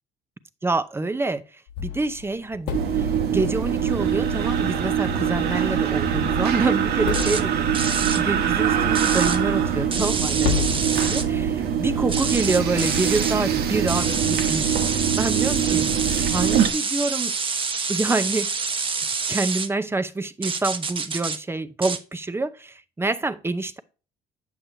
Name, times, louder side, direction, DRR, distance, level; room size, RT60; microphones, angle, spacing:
voice 1, 0.6-1.4 1.8-15.9 16.3-17.3 17.9-18.5 19.3-23.8, right 3 dB, 15° right, 0.7 m, -27 dB
sound 1, 1.7-3.3 5.2-5.9 6.2-6.3 7.1-7.8 9.8-9.9 10.4-11.6, left 9 dB, 90° left, 1.2 m, -32 dB
sound 2, 2.7-16.7, right 8 dB, 70° right, 1.3 m, -23 dB
sound 3, 7.1-7.4 7.7-8.2 9.0-9.4 9.9-11.3 12.1-13.4 13.9-19.7 20.4-21.4 21.8-22.0, right 5 dB, 30° right, 1.1 m, -27 dB
8.5 x 7.5 x 2.7 m
cardioid pair, 110°, 17 cm